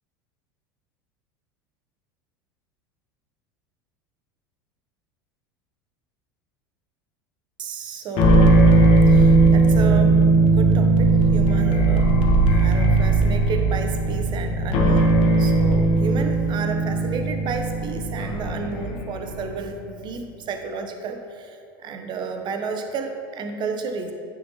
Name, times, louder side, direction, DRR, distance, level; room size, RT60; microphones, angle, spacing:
voice 1, 7.6-8.5 9.1-10.1 10.6-12.1 12.5-15.1 15.4-24.1, right 4 dB, 40° right, 5 dB, 0.6 m, -32 dB
sound 1, 8.2-19.5, right 2 dB, 55° left, 0.8 m, -18 dB
9.2 x 3.8 x 2.7 m, 2.4 s
hypercardioid pair, 80°, 12 cm